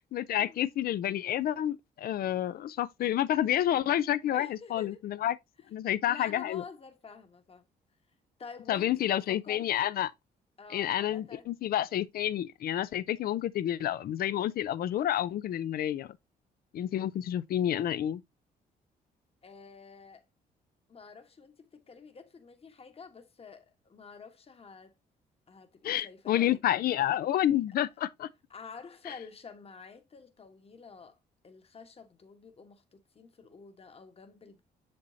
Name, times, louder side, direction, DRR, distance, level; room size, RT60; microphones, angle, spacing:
voice 1, 0.1-5.4 5.7-6.6 8.7-10.1 10.7-16.1 16.7-18.2 25.8-28.3, left 12 dB, 65° left, 0.5 m, -29 dB
voice 2, 4.3-5.0 6.1-7.7 8.4-9.9 10.6-11.5 19.4-20.2 20.9-24.9 25.5-26.6 28.5-31.2 31.4-34.6, left 5 dB, 35° left, 1.2 m, -49 dB
6.9 x 5.3 x 2.7 m
cardioid pair, 80°, 16 cm